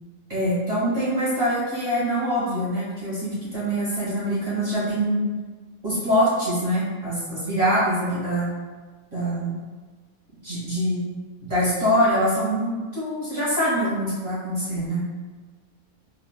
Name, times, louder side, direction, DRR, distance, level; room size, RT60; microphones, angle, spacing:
voice 1, 0.3-5.2 5.8-8.5 9.1-9.6 10.4-11.1 11.4-15.1, equal, 30° right, -10 dB, 1.5 m, -24 dB
3.6 x 2.3 x 2.3 m, 1.3 s
omnidirectional pair, 1.5 m